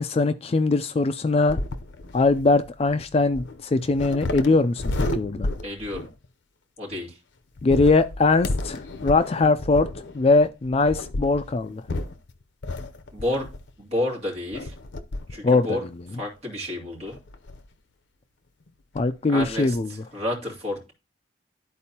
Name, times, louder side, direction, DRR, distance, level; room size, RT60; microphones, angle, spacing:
voice 1, 0.0-1.6 2.1-4.8 5.1-5.5 7.6-9.9 10.1-11.8 15.4-15.8 19.0-19.9, left 3 dB, 35° left, 0.3 m, -21 dB
sound 1, 1.4-6.3 7.6-13.8 14.5-15.4 15.9-16.0 17.1-17.7 18.7-18.8 18.9-19.1 19.4-19.8, left 2 dB, 80° left, 0.7 m, -32 dB
voice 2, 5.6-6.1 6.8-7.2 13.1-13.5 13.8-14.7 15.3-15.8 16.1-17.2 19.3-20.9, left 1 dB, 35° right, 2.5 m, -30 dB
12.0 x 4.3 x 2.8 m
head